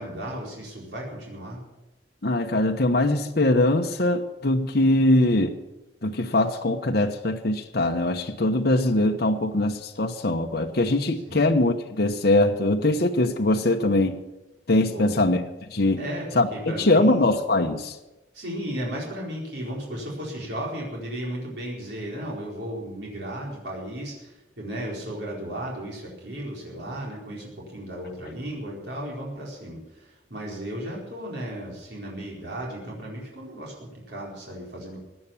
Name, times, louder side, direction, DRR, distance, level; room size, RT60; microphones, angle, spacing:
voice 1, 0.0-1.6 11.3-11.4 14.9-15.2 16.0-17.3 18.3-35.0, equal, 65° right, -3 dB, 4.5 m, -35 dB
voice 2, 2.2-5.6 6.0-14.2 14.7-15.4 15.7-16.0 16.4-17.9, left 2 dB, 60° left, 3 dB, 1.0 m, -22 dB
16.0 x 9.8 x 7.2 m, 1.0 s
head